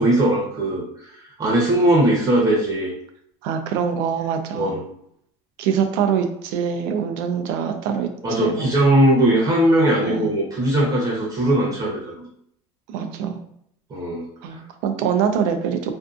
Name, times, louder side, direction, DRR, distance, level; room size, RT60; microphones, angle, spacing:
voice 1, 0.0-2.9 4.5-4.8 8.2-12.3 13.9-14.3, right 1 dB, 25° right, -4 dB, 0.8 m, -19 dB
voice 2, 3.4-4.7 5.6-8.1 8.4-8.8 10.0-10.3 12.9-13.4 14.4-15.9, right 7 dB, 70° right, 6 dB, 0.4 m, -24 dB
2.6 x 2.4 x 2.4 m, 0.70 s
supercardioid pair, 125°, 14 cm